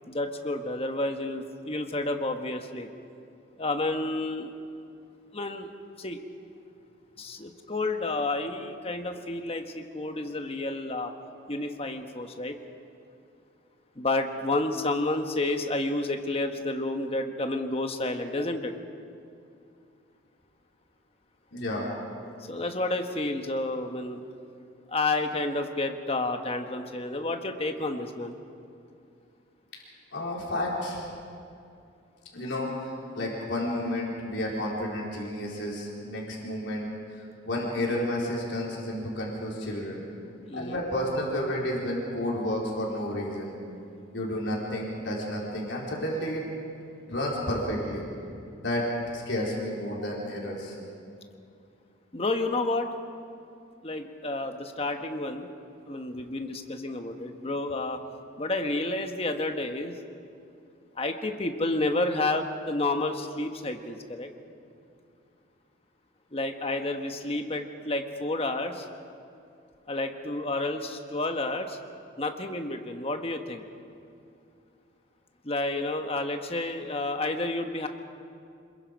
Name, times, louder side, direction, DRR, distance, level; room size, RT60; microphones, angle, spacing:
voice 1, 0.1-2.9 3.6-4.5 5.3-5.7 6.0-6.2 7.2-11.1 11.5-12.6 14.0-18.7 22.4-24.2 24.9-28.3 40.5-40.8 52.1-52.9 53.8-55.5 55.9-58.0 58.4-60.0 61.0-64.3 66.3-68.8 69.9-71.8 72.2-73.6 75.4-77.9, left 2 dB, 30° left, 5 dB, 1.3 m, -30 dB
voice 2, 21.5-21.9 30.1-31.1 32.3-40.0 40.5-43.5 44.1-46.4 47.1-48.0 48.6-48.8 49.1-50.7, left 1 dB, 65° left, -4 dB, 4.3 m, -31 dB
26.5 x 21.5 x 5.3 m, 2.5 s
head